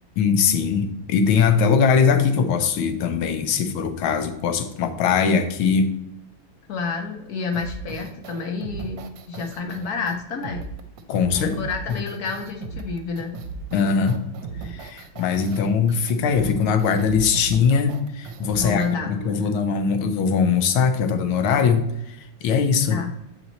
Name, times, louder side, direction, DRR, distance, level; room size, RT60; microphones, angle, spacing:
voice 1, 0.2-5.9 11.1-11.5 11.9-12.0 13.7-14.2 14.6-23.0, left 6 dB, 90° left, 8 dB, 1.6 m, -21 dB
voice 2, 6.7-10.7 11.3-13.3 15.5-15.7 18.6-19.5 22.9-23.1, left 4 dB, 55° left, 3 dB, 1.2 m, -30 dB
sound 1, 7.5-19.0, right 4 dB, 70° right, 1.4 m, -36 dB
7.5 x 4.5 x 4.0 m, 0.85 s
omnidirectional pair, 2.2 m